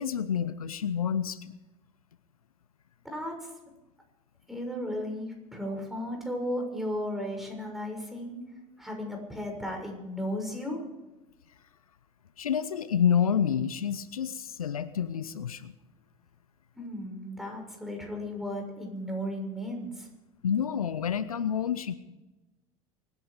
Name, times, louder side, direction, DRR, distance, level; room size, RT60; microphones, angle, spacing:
voice 1, 0.0-1.5 12.4-15.7 20.4-21.9, left 8 dB, 90° left, 15 dB, 0.7 m, -28 dB
voice 2, 3.0-3.5 4.5-8.4 8.8-10.8 16.8-20.1, equal, ahead, 1 dB, 6.5 m, -35 dB
24.0 x 11.0 x 5.1 m, 1.0 s
hypercardioid pair, 75°, 18 cm